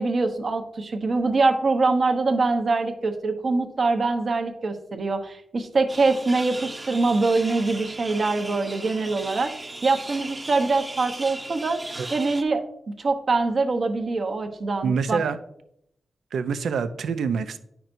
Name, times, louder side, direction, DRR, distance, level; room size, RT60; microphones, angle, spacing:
voice 1, 0.0-11.8 12.1-12.6 13.0-15.2, right 3 dB, 55° right, 5 dB, 0.9 m, -24 dB
sound 1, 5.9-12.4, right 2 dB, 25° right, 0.8 m, -37 dB
voice 2, 14.8-15.4 16.3-17.6, right 6 dB, 85° right, 11 dB, 0.4 m, -26 dB
9.1 x 5.8 x 2.6 m, 0.76 s
cardioid pair, 80°, 0 cm